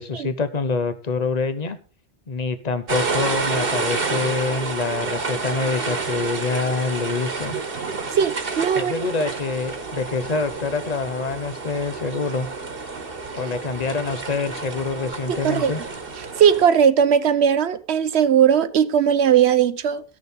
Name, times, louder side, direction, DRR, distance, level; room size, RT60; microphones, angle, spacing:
voice 1, 0.0-1.8 2.3-7.5 8.7-12.5 13.4-15.8, left 4 dB, 40° left, 1.0 m, -26 dB
sound 1, 2.9-16.7, right 4 dB, 55° right, 1.6 m, -29 dB
voice 2, 8.1-8.9 15.3-15.7 16.4-20.0, right 8 dB, 70° right, 1.0 m, -18 dB
14.0 x 6.5 x 5.3 m
omnidirectional pair, 1.2 m